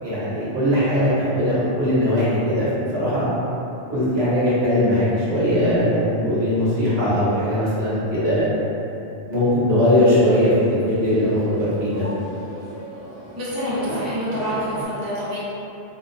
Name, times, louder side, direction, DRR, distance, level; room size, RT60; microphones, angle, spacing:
voice 1, 0.0-2.7 2.9-3.3 3.9-8.5 9.3-12.0, left 1 dB, 65° right, -11 dB, 1.1 m, -20 dB
sound 1, 9.8-14.9, equal, 55° left, 1.2 m, -36 dB
voice 2, 13.3-15.4, equal, 25° right, -11 dB, 0.5 m, -27 dB
2.8 x 2.1 x 2.4 m, 2.8 s
omnidirectional pair, 1.2 m